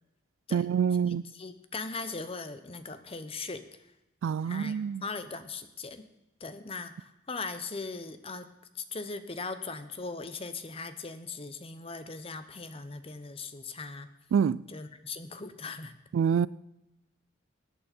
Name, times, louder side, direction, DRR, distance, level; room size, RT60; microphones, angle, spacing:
voice 1, 0.5-1.3 4.2-5.0 14.3-14.6 16.1-16.5, right 7 dB, 85° right, 0.3 m, -26 dB
voice 2, 1.1-3.6 4.5-6.1 6.4-8.5 8.7-14.1 14.7-15.9, left 4 dB, 30° left, 0.8 m, -39 dB
18.0 x 8.6 x 4.3 m
head